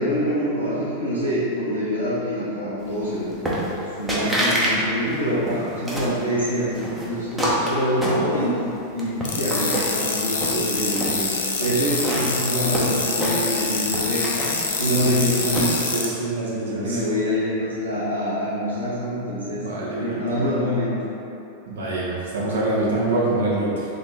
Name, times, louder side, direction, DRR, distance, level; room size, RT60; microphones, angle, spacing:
voice 1, 0.0-3.4 3.8-5.5 5.8-8.6 8.9-14.5 14.8-15.8 16.7-19.6 20.0-20.9, equal, 80° right, -10 dB, 0.8 m, -25 dB
sound 1, 3.5-3.8 4.1-4.7 5.1-6.2 6.7-8.6 9.0-10.0 10.4-11.1 11.6-13.7 13.9-15.9, equal, 5° right, 0.9 m, -26 dB
sound 2, 9.2-16.1, left 4 dB, 65° left, 0.5 m, -26 dB
voice 2, 10.5-11.1 14.7-15.0 15.9-17.0 19.5-20.4 21.7-23.8, right 2 dB, 65° right, -6 dB, 1.1 m, -26 dB
3.4 x 3.2 x 4.3 m, 2.9 s
figure-of-eight pair, 90°, 0 cm